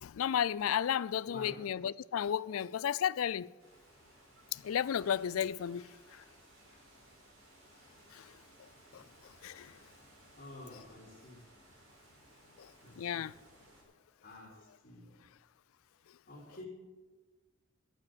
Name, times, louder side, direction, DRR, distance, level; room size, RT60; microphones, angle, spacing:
voice 1, 0.0-3.5 4.5-5.9 8.1-8.3 8.9-9.0 9.4-9.7 13.0-13.3, left 9 dB, 85° left, 0.4 m, -33 dB
voice 2, 1.3-1.6 8.9-9.0 10.3-11.4 12.8-13.2 13.8-14.5 14.8-15.1 16.3-16.7, left 2 dB, 45° left, 3.8 m, -50 dB
sound 1, 3.6-13.8, right 1 dB, 80° right, 4.4 m, -61 dB
12.5 x 8.0 x 7.4 m
head